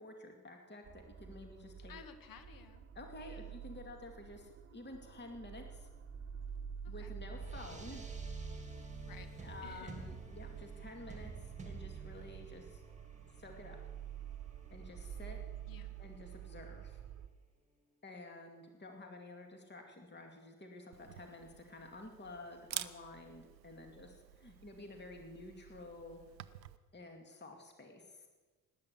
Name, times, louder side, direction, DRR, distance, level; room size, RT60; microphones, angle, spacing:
voice 1, 0.0-1.9 2.9-5.9 6.9-8.1 9.4-12.8 13.3-13.8 14.7-15.4 16.0-17.0 18.0-26.2 26.9-28.3, left 2 dB, 20° left, 3 dB, 2.3 m, -51 dB
sound 1, 0.8-17.3, right 7 dB, 30° right, 0.9 m, -48 dB
voice 2, 1.9-2.9 3.2-3.6 6.8-7.1 9.1-10.1 15.7-15.9, left 6 dB, 45° left, 9 dB, 1.8 m, -55 dB
sound 2, 7.2-17.1, right 3 dB, 15° right, 2.4 m, -52 dB
Camera, 20.9-26.8, right 12 dB, 85° right, 0.6 m, -49 dB
18.5 x 10.0 x 7.0 m, 1.3 s
figure-of-eight pair, 50°, 49 cm